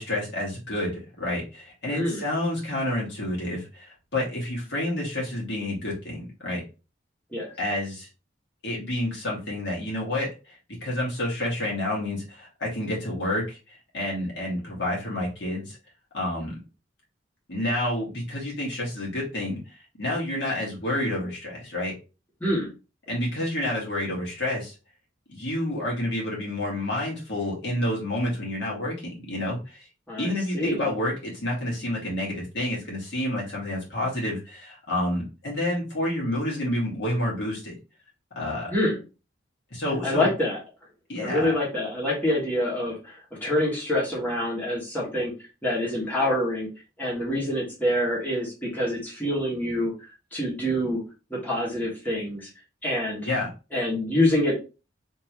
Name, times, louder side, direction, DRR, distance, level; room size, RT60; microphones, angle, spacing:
voice 1, 0.0-6.6 7.6-8.1 8.6-15.8 16.1-16.5 17.5-19.6 20.0-21.9 23.1-24.7 25.3-29.9 30.2-37.7 38.4-38.7 39.7-40.3 41.1-41.5 53.2-53.5, left 1 dB, 65° left, -4 dB, 1.9 m, -29 dB
voice 2, 1.9-2.2 7.3-7.5 22.4-22.7 30.1-30.8 38.7-39.0 40.0-40.6 41.2-45.3 45.6-46.7 47.0-49.9 50.3-51.0 51.3-52.5 52.8-53.3 53.7-54.5, left 1 dB, 10° left, -6 dB, 1.5 m, -26 dB
3.5 x 3.0 x 2.9 m, 0.30 s
head